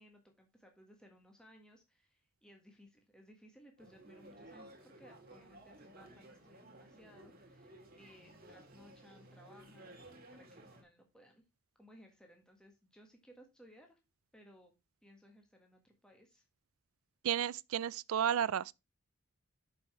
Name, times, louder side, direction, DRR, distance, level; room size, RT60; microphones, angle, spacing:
voice 1, 0.0-10.0 10.3-11.4 11.8-14.0 14.3-14.7 15.0-16.4, equal, 5° left, 1.5 m, -61 dB
sound 1, 3.8-10.8, right 1 dB, 40° right, 2.0 m, -56 dB
voice 2, 17.2-18.7, right 9 dB, 70° right, 0.3 m, -32 dB
6.8 x 5.6 x 4.5 m
head